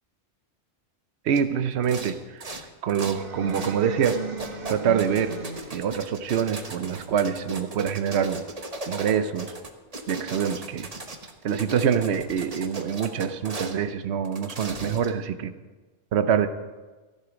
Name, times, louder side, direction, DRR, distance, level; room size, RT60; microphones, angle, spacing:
voice 1, 1.2-2.6 2.8-4.2 4.7-5.3 5.7-8.4 8.9-9.5 10.1-10.9 11.4-15.5 16.1-16.5, right 8 dB, 75° right, 10 dB, 1.0 m, -25 dB
sound 1, 1.3-1.5 1.8-2.1 2.4-3.2 3.5-3.8 4.0-13.8 14.2-15.2, right 3 dB, 35° right, 1.2 m, -37 dB
sound 2, 3.1-6.0, right 4 dB, 55° right, 1.4 m, -35 dB
14.5 x 11.5 x 5.1 m, 1.3 s
omnidirectional pair, 1.1 m